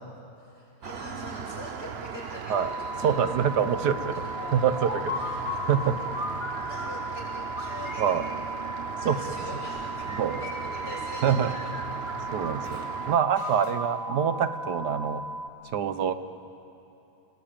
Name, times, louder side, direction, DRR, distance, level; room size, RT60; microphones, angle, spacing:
voice 1, 0.4-3.4 4.1-4.5 4.9-6.3 6.6-8.6 9.0-9.9 10.4-11.7, left 1 dB, 85° left, -5 dB, 8.7 m, -44 dB
Rain, 0.8-13.2, right 7 dB, 50° right, 0.8 m, -38 dB
sound 1, 2.5-15.5, right 1 dB, 5° right, 0.6 m, -37 dB
voice 2, 3.0-5.1 5.5-6.0 8.0-8.2 9.0-9.2 10.1-10.4 11.2-11.5 12.3-15.2 15.7-16.1, right 8 dB, 85° right, 11 dB, 1.7 m, -25 dB
sound 2, 4.4-7.1 7.6-9.4 10.0-11.1 11.4-12.9 13.4-15.1, left 3 dB, 15° left, 2.4 m, -38 dB
29.5 x 19.5 x 9.0 m, 2.8 s
omnidirectional pair, 1.7 m